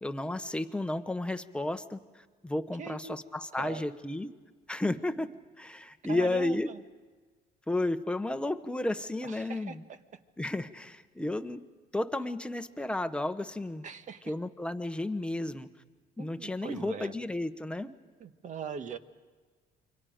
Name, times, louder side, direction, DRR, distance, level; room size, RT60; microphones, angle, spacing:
voice 1, 0.0-4.3 4.7-5.3 5.6-6.7 7.7-9.8 10.4-11.6 11.9-13.9 14.3-15.7 16.2-17.9, left 2 dB, 5° left, 9 dB, 1.0 m, -32 dB
voice 2, 2.8-3.2 3.6-3.8 6.1-6.8 9.2-10.0 13.8-14.3 16.2-17.1 18.2-19.0, right 6 dB, 45° right, 10 dB, 1.3 m, -41 dB
28.5 x 24.0 x 5.1 m, 1.4 s
cardioid pair, 110°, 17 cm